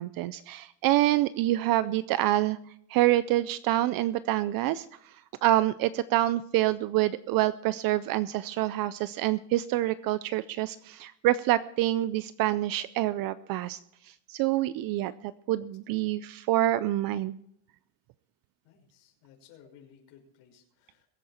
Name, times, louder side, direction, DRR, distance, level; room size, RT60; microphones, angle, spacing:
voice 1, 0.0-2.6 2.9-13.8 14.0-17.4, right 15 dB, 45° right, 15 dB, 0.5 m, -27 dB
voice 2, 18.6-21.1, left 8 dB, 70° left, 2 dB, 5.7 m, -57 dB
22.5 x 8.6 x 4.3 m, 0.74 s
cardioid pair, 160°, 48 cm